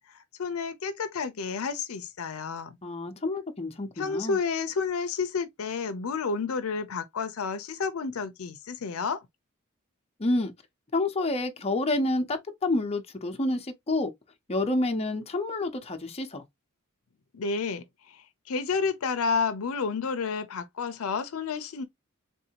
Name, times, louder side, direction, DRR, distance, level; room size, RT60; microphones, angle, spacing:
voice 1, 0.0-2.8 4.0-9.2 17.3-21.8, left 5 dB, 75° left, 0.5 m, -31 dB
voice 2, 2.8-4.4 10.2-10.5 10.9-14.1 14.5-16.4, left 2 dB, 30° left, 0.6 m, -28 dB
3.5 x 2.6 x 2.8 m
head